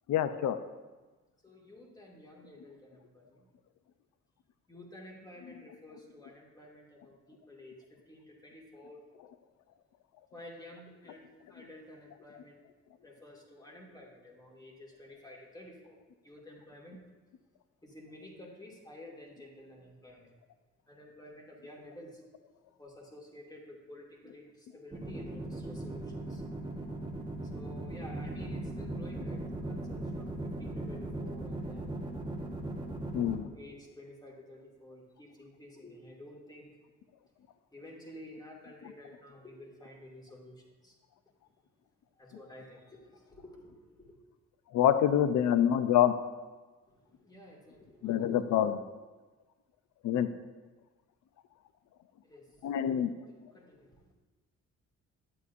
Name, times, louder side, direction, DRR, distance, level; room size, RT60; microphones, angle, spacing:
voice 1, 0.1-0.6 5.5-5.6 33.1-33.5 44.7-46.1 48.0-48.8 50.0-50.3 52.6-53.1, left 10 dB, 75° left, 11 dB, 0.6 m, -26 dB
voice 2, 1.4-3.5 4.7-9.0 10.3-12.6 13.0-16.0 16.2-17.0 17.8-20.3 20.9-22.2 22.8-26.4 27.4-32.0 33.3-36.7 37.7-41.0 42.2-43.7 44.0-44.2 46.9-48.3 52.2-52.6 53.2-54.1, left 1 dB, 15° left, -2 dB, 2.2 m, -51 dB
sound 1, 24.9-33.3, right 1 dB, 15° right, 1.2 m, -38 dB
11.0 x 8.5 x 2.6 m, 1.2 s
cardioid pair, 90°, 30 cm